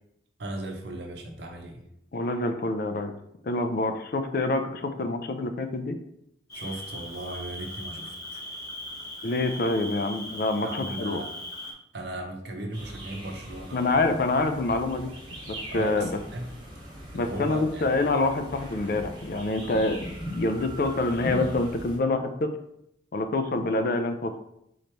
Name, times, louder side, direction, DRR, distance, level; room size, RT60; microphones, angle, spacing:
voice 1, 0.4-1.8 6.5-8.4 10.6-11.3 11.9-14.2 15.7-16.5 17.1-17.8 19.6-19.8, right 2 dB, 65° right, 3 dB, 0.7 m, -37 dB
voice 2, 2.1-3.1 3.4-6.0 9.2-11.2 13.7-15.1 15.5-16.1 17.1-20.0 20.3-22.5 23.1-24.4, left 2 dB, 50° left, 7 dB, 0.4 m, -26 dB
Cricket, 6.5-11.7, left 1 dB, 20° left, 0.9 m, -39 dB
sound 1, 12.7-22.0, right 1 dB, 25° right, 1.1 m, -40 dB
3.9 x 3.0 x 3.3 m, 0.77 s
head